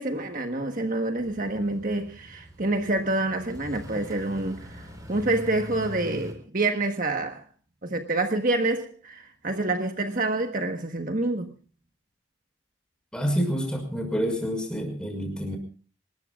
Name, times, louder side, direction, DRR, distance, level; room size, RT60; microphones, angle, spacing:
voice 1, 0.0-4.8 5.1-7.4 7.8-11.5, right 2 dB, 45° right, 1.4 m, -27 dB
sound 1, 1.2-6.3, equal, 20° right, 4.1 m, -42 dB
voice 2, 13.1-15.6, equal, 5° left, 5.7 m, -28 dB
27.0 x 20.5 x 2.4 m
head